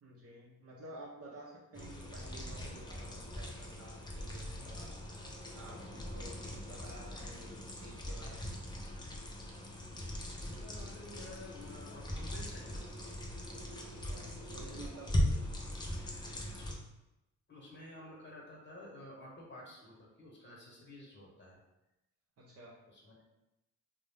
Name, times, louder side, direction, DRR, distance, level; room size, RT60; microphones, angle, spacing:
voice 1, 0.0-8.6 14.0-15.1 17.7-17.8 22.4-22.8, right 1 dB, 55° right, -4 dB, 0.6 m, -52 dB
sound 1, 1.7-16.7, left 1 dB, 15° left, 0.5 m, -40 dB
voice 2, 10.4-13.2 14.4-15.5 15.9-16.0 16.6-16.7 17.5-21.6 22.8-23.2, left 1 dB, 35° left, -2 dB, 0.9 m, -52 dB
2.4 x 2.0 x 3.3 m, 0.94 s
cardioid pair, 80°, 30 cm